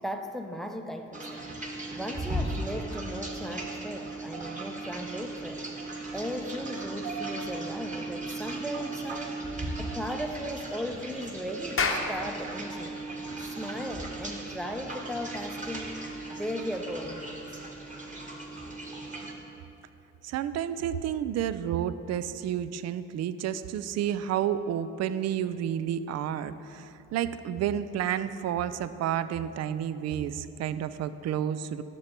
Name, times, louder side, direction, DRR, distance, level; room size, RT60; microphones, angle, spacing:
voice 1, 0.0-1.5 1.9-5.6 6.1-9.3 9.8-13.0 13.4-16.0 16.3-17.4, equal, ahead, 5 dB, 0.7 m, -37 dB
sound 1, 1.1-19.3, right 2 dB, 20° right, 1.5 m, -37 dB
Clapping, 11.6-16.4, left 4 dB, 30° left, 0.9 m, -34 dB
voice 2, 20.2-31.8, right 10 dB, 40° right, 13 dB, 0.4 m, -30 dB
12.5 x 6.8 x 3.0 m, 2.9 s
figure-of-eight pair, 40°, 40 cm